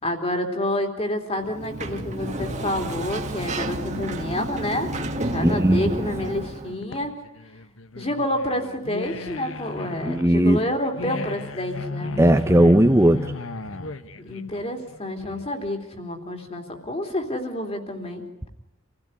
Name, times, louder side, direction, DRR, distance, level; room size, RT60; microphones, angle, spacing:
voice 1, 0.0-4.9 5.2-7.1 7.9-12.2 14.2-18.2, left 1 dB, 30° left, 4 dB, 3.2 m, -28 dB
Sliding door, 1.4-6.7, right 1 dB, 35° right, 1.8 m, -31 dB
voice 2, 5.4-6.0 10.0-10.6 12.2-13.3, right 1 dB, 15° right, 6 dB, 0.9 m, -17 dB
sound 1, 6.6-15.7, left 2 dB, 75° left, 1.3 m, -35 dB
27.0 x 16.0 x 9.8 m, 0.88 s
head